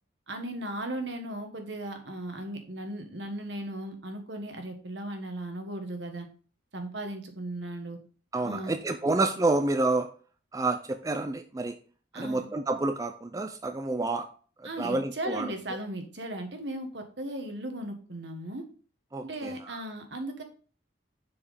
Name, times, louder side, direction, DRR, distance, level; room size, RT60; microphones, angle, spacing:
voice 1, 0.3-6.3 6.7-8.0 8.4-8.9 12.1-12.5 14.6-18.6 19.2-20.4, right 1 dB, 70° right, 5 dB, 1.5 m, -37 dB
voice 2, 8.3-10.1 10.5-11.8 12.1-14.3 14.6-15.5 19.1-19.8, right 2 dB, 20° right, 7 dB, 0.4 m, -29 dB
7.2 x 4.7 x 5.0 m, 0.41 s
head